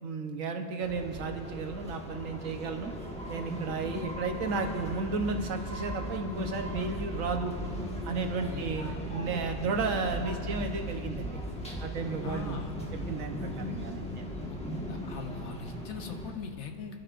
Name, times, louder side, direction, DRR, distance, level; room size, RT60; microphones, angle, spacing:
voice 1, 0.0-2.9 3.3-7.5 8.1-11.4 11.8-12.6 13.1-14.3, right 4 dB, 65° right, 5 dB, 1.3 m, -33 dB
sound 1, 0.8-16.3, equal, 5° left, 1.3 m, -37 dB
voice 2, 12.2-12.8 14.4-14.6 14.9-17.0, left 5 dB, 55° left, 4 dB, 1.1 m, -41 dB
23.0 x 12.0 x 2.5 m, 2.8 s
omnidirectional pair, 1.5 m